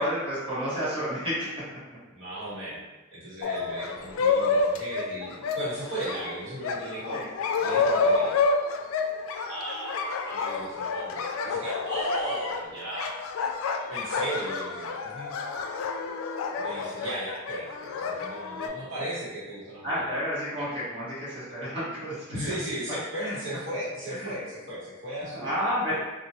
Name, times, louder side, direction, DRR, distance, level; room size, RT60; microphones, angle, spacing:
voice 1, 0.0-1.5 7.1-7.3 19.8-22.5 23.2-23.4 24.1-24.3 25.3-26.0, equal, 25° right, -11 dB, 1.0 m, -30 dB
voice 2, 2.1-7.2 7.6-8.4 9.4-13.1 13.9-15.3 16.5-20.1 20.6-20.7 22.3-26.0, right 1 dB, 70° right, -9 dB, 1.0 m, -36 dB
sound 1, 3.4-18.7, left 4 dB, 85° left, 0.3 m, -29 dB
2.8 x 2.1 x 2.9 m, 1.1 s
head